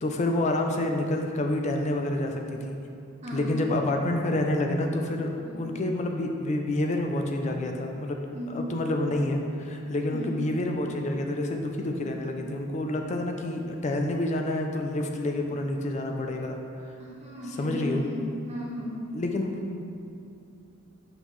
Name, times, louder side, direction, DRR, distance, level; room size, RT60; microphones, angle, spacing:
voice 1, 0.0-2.8 3.3-16.6 17.6-18.0 19.1-19.8, left 1 dB, 35° left, 3 dB, 0.4 m, -28 dB
voice 2, 8.3-8.7 10.1-10.3 17.0-19.0, equal, 30° right, -4 dB, 0.8 m, -36 dB
5.6 x 5.4 x 3.1 m, 2.5 s
head